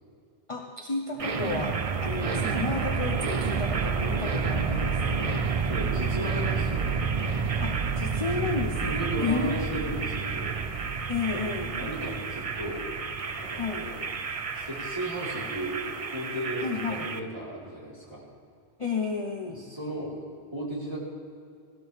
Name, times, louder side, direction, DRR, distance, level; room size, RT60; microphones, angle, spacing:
voice 1, 0.5-5.4 7.6-9.5 11.1-11.8 13.5-13.9 16.6-17.1 18.8-19.6, left 4 dB, 30° left, 1 dB, 0.9 m, -32 dB
sound 1, 1.2-17.2, right 5 dB, 40° right, 0.6 m, -30 dB
voice 2, 5.6-6.9 8.9-10.6 11.6-12.8 13.3-14.0 14.5-18.3 19.5-21.0, right 1 dB, 25° right, -7 dB, 4.4 m, -35 dB
18.0 x 16.5 x 3.5 m, 2.4 s
omnidirectional pair, 1.1 m